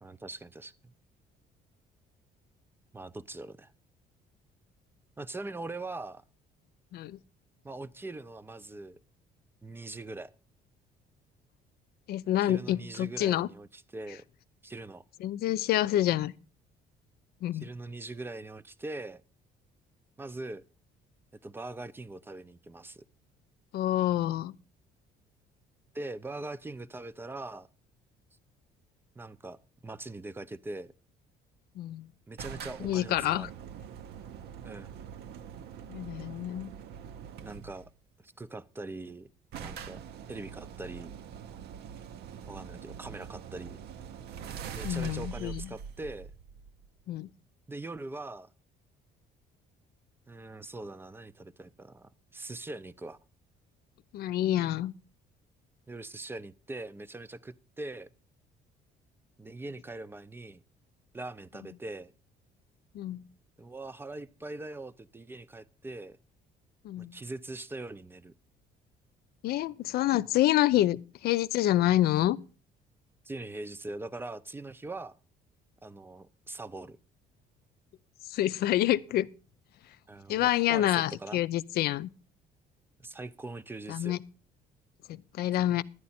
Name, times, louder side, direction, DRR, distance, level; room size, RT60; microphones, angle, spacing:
voice 1, 0.0-0.9 2.9-3.7 5.2-6.2 7.6-9.0 9.6-10.3 12.4-14.2 14.6-15.0 17.5-19.2 20.2-20.6 21.4-23.0 25.9-27.7 29.2-30.9 32.3-33.5 34.6-34.9 37.4-37.9 38.2-39.3 39.6-40.0 40.3-41.1 42.5-43.8 44.7-46.3 47.7-48.5 50.3-53.2 55.9-58.1 59.4-60.6 61.1-62.1 63.6-66.2 67.0-68.3 73.2-75.2 75.8-77.0 80.1-81.4 83.0-84.2, right 2 dB, 15° right, 0.5 m, -42 dB
voice 2, 12.1-13.5 15.2-16.3 17.4-17.6 23.7-24.5 31.8-32.1 32.8-33.5 35.9-36.7 44.8-45.7 47.1-47.3 54.1-54.9 62.9-63.2 66.8-67.1 69.4-72.4 78.3-79.3 80.3-82.1 83.9-84.2 85.1-85.8, left 13 dB, 65° left, 0.5 m, -27 dB
sound 1, 32.4-37.9 38.9-39.0 39.2-39.3 39.5-47.0, right 7 dB, 75° right, 0.8 m, -44 dB
11.0 x 9.4 x 4.2 m
cardioid pair, 110°, 17 cm